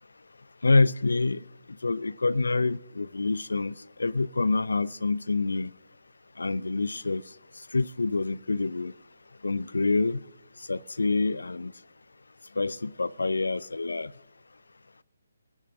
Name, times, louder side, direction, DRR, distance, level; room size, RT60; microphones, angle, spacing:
voice 1, 0.6-1.4 1.8-3.7 4.0-5.7 6.4-7.2 7.7-8.9 9.4-10.2 10.7-11.7 12.6-14.1, left 3 dB, 75° left, 19 dB, 0.4 m, -26 dB
23.0 x 10.5 x 2.5 m, 1.2 s
figure-of-eight pair, 145°, 0 cm